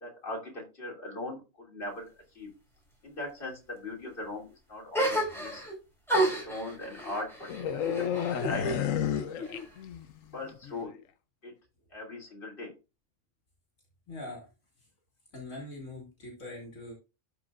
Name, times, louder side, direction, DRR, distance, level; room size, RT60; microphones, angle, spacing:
voice 1, 0.0-2.1 2.3-2.5 3.0-5.6 6.1-9.7 10.3-11.0 11.4-11.5 11.9-12.7, left 2 dB, 40° left, -1 dB, 3.2 m, -40 dB
sound 1, 4.9-5.7 6.1-8.8 9.1-10.0, right 1 dB, ahead, 4.7 m, -31 dB
sound 2, 7.5-10.2 10.4-10.7, left 9 dB, 85° left, 1.2 m, -31 dB
voice 2, 14.1-14.5 15.3-16.9, left 2 dB, 70° left, 0 dB, 2.6 m, -42 dB
12.0 x 5.2 x 2.5 m, 0.28 s
omnidirectional pair, 1.4 m